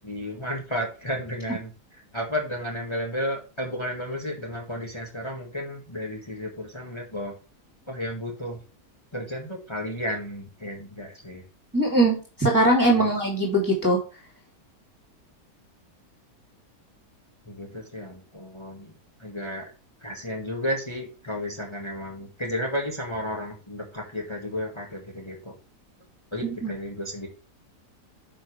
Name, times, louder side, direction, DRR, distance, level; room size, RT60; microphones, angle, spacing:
voice 1, 0.0-1.7 2.1-7.3 7.9-8.6 9.1-11.4 12.9-13.1 17.5-18.9 19.2-19.7 20.0-25.5 26.3-27.3, equal, 15° left, -1 dB, 1.9 m, -33 dB
voice 2, 11.7-14.0 26.4-26.7, right 1 dB, 10° right, -2 dB, 2.8 m, -21 dB
9.9 x 5.8 x 3.3 m, 0.34 s
omnidirectional pair, 1.7 m